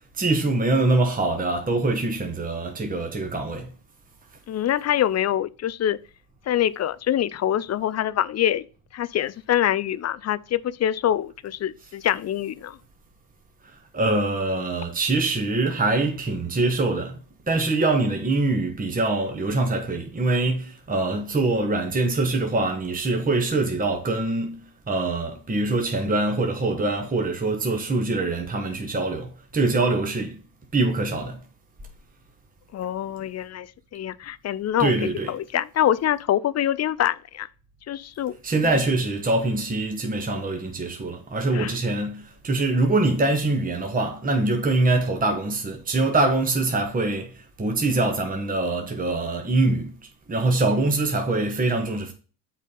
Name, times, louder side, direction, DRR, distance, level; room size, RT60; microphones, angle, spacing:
voice 1, 0.1-3.7 13.6-17.2 17.5-24.6 24.9-30.4 30.7-31.4 34.8-35.3 38.4-49.9 50.3-52.1, right 2 dB, 15° right, 1.3 m, -24 dB
voice 2, 4.5-6.0 6.5-8.6 8.9-12.8 32.7-33.7 33.9-34.9 35.3-37.5 37.9-38.4 38.6-38.7 41.5-41.7, left 11 dB, 35° left, 0.4 m, -25 dB
6.3 x 4.1 x 5.3 m
hypercardioid pair, 65°, 49 cm